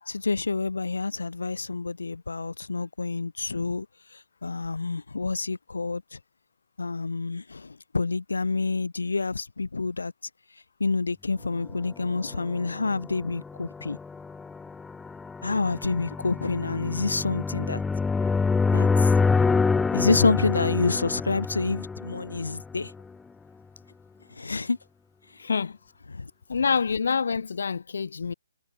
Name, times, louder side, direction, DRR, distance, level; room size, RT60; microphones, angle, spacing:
voice 1, 0.1-3.9 4.4-6.2 6.8-10.1 10.8-14.0 15.4-17.8 18.7-19.1 19.9-22.9 24.3-24.8 26.1-26.3, left 3 dB, 90° left, 2.7 m, -28 dB
sound 1, 12.2-23.0, left 4 dB, 5° left, 0.3 m, -26 dB
voice 2, 25.4-25.8 26.5-28.3, left 5 dB, 65° left, 1.8 m, -27 dB
hypercardioid pair, 155°, 0 cm